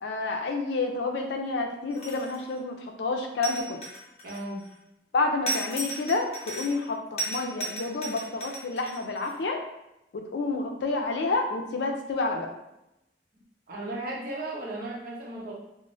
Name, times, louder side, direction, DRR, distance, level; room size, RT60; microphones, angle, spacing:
voice 1, 0.0-3.8 5.1-9.6 10.1-12.5, left 3 dB, 75° left, 3 dB, 0.4 m, -29 dB
sound 1, 1.9-2.5 3.4-4.7 5.5-6.9 7.2-9.3, right 1 dB, 40° left, 0.7 m, -35 dB
voice 2, 4.2-4.7 13.7-15.5, right 1 dB, 55° right, -4 dB, 0.7 m, -35 dB
2.6 x 2.0 x 3.0 m, 0.88 s
head